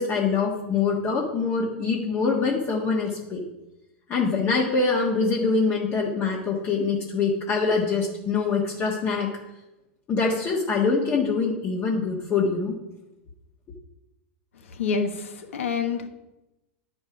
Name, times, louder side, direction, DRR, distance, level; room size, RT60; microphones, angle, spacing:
voice 1, 0.0-3.4 4.1-9.3 10.1-12.8, left 4 dB, 35° left, -2 dB, 1.6 m, -24 dB
voice 2, 14.7-16.1, left 5 dB, 85° left, 7 dB, 1.3 m, -27 dB
10.5 x 5.3 x 5.0 m, 0.96 s
hypercardioid pair, 105°, 7 cm